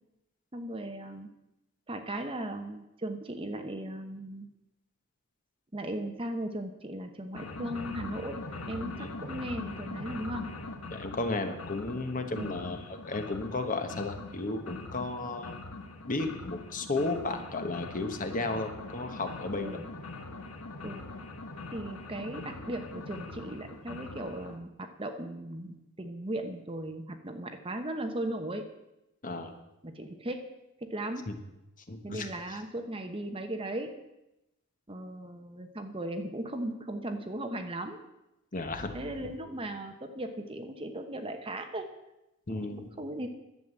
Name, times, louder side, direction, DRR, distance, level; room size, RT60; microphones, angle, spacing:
voice 1, 0.5-1.3 1.9-4.5 5.7-8.4 8.7-10.5 12.3-12.6 19.6-19.8 20.8-21.0 21.7-28.7 29.8-30.4 30.8-31.3 32.0-33.9 34.9-38.0 38.9-41.9 42.5-42.7 43.0-43.3, right 1 dB, 25° right, 6 dB, 1.0 m, -37 dB
sound 1, 7.3-24.6, left 3 dB, 85° left, 1.5 m, -42 dB
voice 2, 10.9-15.6 16.1-19.8 29.2-29.5 31.3-31.4 31.9-32.6 38.5-39.3 42.5-42.9, left 2 dB, 35° left, 7 dB, 1.1 m, -34 dB
11.0 x 7.7 x 7.7 m, 0.92 s
head